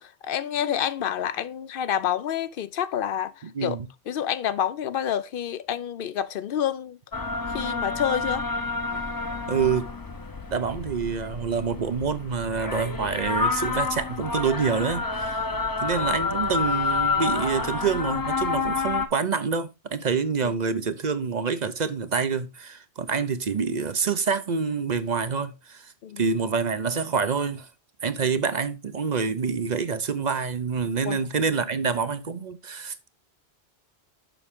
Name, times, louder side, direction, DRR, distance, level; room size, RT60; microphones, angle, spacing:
voice 1, 0.0-3.8 4.1-7.0 7.5-8.4 20.4-20.6 26.0-26.2 31.1-31.2, left 9 dB, 65° left, 0.7 m, -28 dB
voice 2, 3.4-3.9 9.5-9.9 10.5-15.4 15.8-27.7 28.0-33.1, right 5 dB, 50° right, 0.7 m, -27 dB
sound 1, 7.1-19.1, left 4 dB, 25° left, 0.6 m, -29 dB
6.9 x 6.1 x 3.5 m
omnidirectional pair, 1.1 m